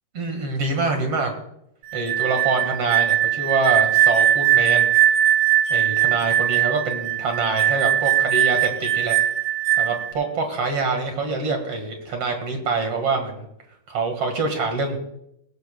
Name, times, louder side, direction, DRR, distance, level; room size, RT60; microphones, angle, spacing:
voice 1, 0.2-1.3 1.9-4.9 5.7-9.2 9.8-13.5 13.9-15.0, right 4 dB, 45° right, 4 dB, 2.3 m, -25 dB
sound 1, 1.9-10.1, right 11 dB, 75° right, 3.3 m, -20 dB
19.0 x 17.0 x 2.3 m, 0.76 s
omnidirectional pair, 4.5 m